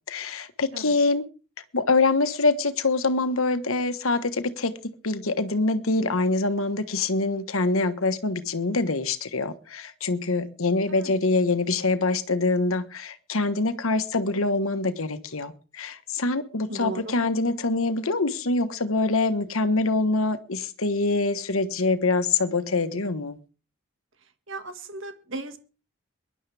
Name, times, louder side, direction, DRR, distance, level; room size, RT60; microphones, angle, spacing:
voice 1, 0.1-1.2 1.7-4.7 5.0-23.4, left 3 dB, 80° left, 1.3 m, -25 dB
voice 2, 16.7-17.1 24.5-25.6, right 2 dB, 65° right, 1.8 m, -36 dB
23.0 x 11.5 x 3.4 m
head